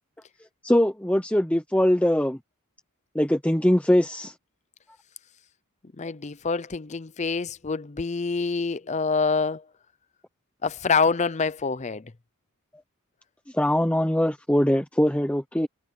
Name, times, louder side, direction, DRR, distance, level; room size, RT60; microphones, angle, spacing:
voice 1, 0.6-2.4 3.1-4.3 13.5-15.7, left 1 dB, 5° left, 0.8 m, -22 dB
voice 2, 6.0-9.6 10.6-12.0, left 4 dB, 30° left, 0.6 m, -26 dB
head